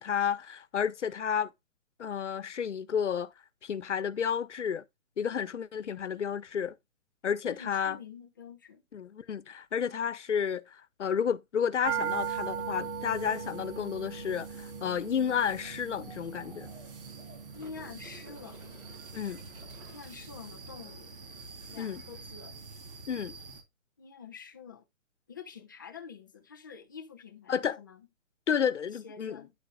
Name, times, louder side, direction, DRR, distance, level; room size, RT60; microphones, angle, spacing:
voice 1, 0.0-1.5 2.0-3.3 3.6-4.8 5.2-6.7 7.2-8.0 8.9-10.6 11.0-16.7 19.1-19.4 21.8-22.0 23.1-23.3 27.5-27.8 28.5-29.4, left 7 dB, 60° left, 1.3 m, -31 dB
voice 2, 7.5-8.8 17.5-18.8 19.9-21.2 21.7-22.6 24.0-24.8 25.3-28.1 28.9-29.5, left 6 dB, 15° left, 0.7 m, -47 dB
sound 1, 11.8-23.6, right 7 dB, 40° right, 3.6 m, -40 dB
sound 2, 15.7-15.8 16.9-20.6 23.1-23.2, equal, 80° right, 6.8 m, -56 dB
9.8 x 8.1 x 2.3 m
hypercardioid pair, 170°, 41 cm